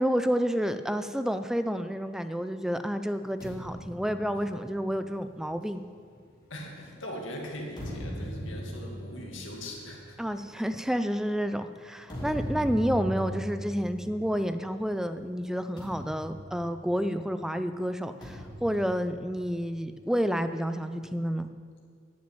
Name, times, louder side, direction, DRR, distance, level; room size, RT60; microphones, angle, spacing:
voice 1, 0.0-5.8 10.2-21.5, equal, 5° right, 10 dB, 0.4 m, -29 dB
sound 1, 3.4-7.0 7.5-14.9 15.2-15.4 15.8-17.4 18.2-20.0, equal, 20° left, 3.2 m, -40 dB
voice 2, 6.5-10.2, left 1 dB, 70° left, -1 dB, 2.3 m, -40 dB
11.0 x 6.3 x 9.0 m, 2.1 s
head